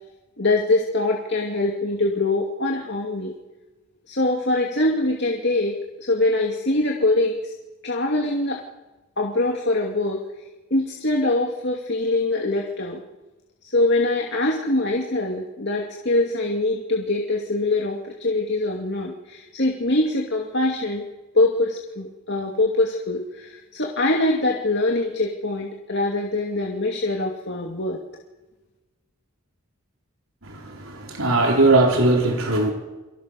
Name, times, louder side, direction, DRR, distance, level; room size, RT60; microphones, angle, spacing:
voice 1, 0.4-3.3 4.1-7.5 7.8-8.6 9.2-10.2 10.7-13.0 13.6-21.1 21.3-28.0, left 2 dB, 55° left, 2.6 m, -23 dB
voice 2, 30.4-32.7, right 2 dB, 75° right, 4.2 m, -19 dB
29.0 x 25.0 x 6.6 m
head